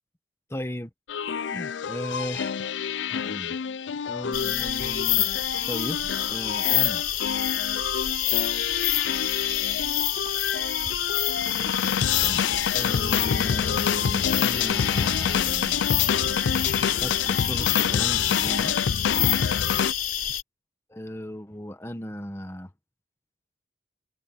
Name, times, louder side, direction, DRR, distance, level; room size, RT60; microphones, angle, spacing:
voice 1, 0.5-0.9 1.5-2.6 3.1-3.6 4.1-5.3 5.7-7.1 10.2-10.8 11.4-11.9 12.2-12.4 12.7-15.8 16.9-18.8 20.9-22.7, equal, 15° left, 1.5 m, -36 dB
sound 1, 1.1-19.9, left 7 dB, 85° left, 0.4 m, -28 dB
sound 2, 4.3-20.4, left 11 dB, 50° left, 3.8 m, -27 dB
head